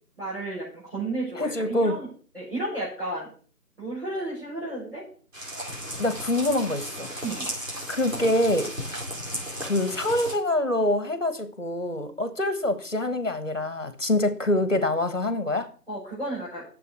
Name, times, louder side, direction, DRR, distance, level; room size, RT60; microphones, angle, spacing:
voice 1, 0.2-2.1 2.3-3.3 3.8-5.0 7.2-7.5 15.9-16.6, right 2 dB, 35° right, 5.8 m, -32 dB
voice 2, 1.4-2.0 6.0-7.1 7.9-8.7 9.6-15.7, left 1 dB, 50° left, 1.8 m, -25 dB
sound 1, 5.3-10.3, equal, 55° right, 4.4 m, -35 dB
7.4 x 7.0 x 7.9 m
figure-of-eight pair, 180°, 47 cm